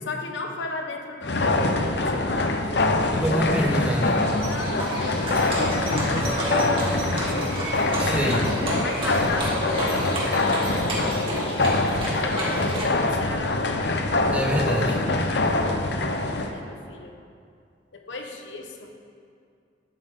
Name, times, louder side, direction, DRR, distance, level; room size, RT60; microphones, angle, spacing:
voice 1, 0.0-3.2 4.4-7.4 8.8-11.8 12.2-14.1 16.5-17.1 17.9-18.9, left 2 dB, 90° left, 3 dB, 1.3 m, -35 dB
sound 1, 1.2-16.5, left 2 dB, 70° left, 0.9 m, -24 dB
voice 2, 3.2-4.2 8.0-8.5 14.3-15.0, equal, 5° right, -1 dB, 1.3 m, -25 dB
Livestock farm animals working animals, 3.7-12.9, equal, 30° right, 2.3 m, -31 dB
12.5 x 11.5 x 3.8 m, 2.3 s
head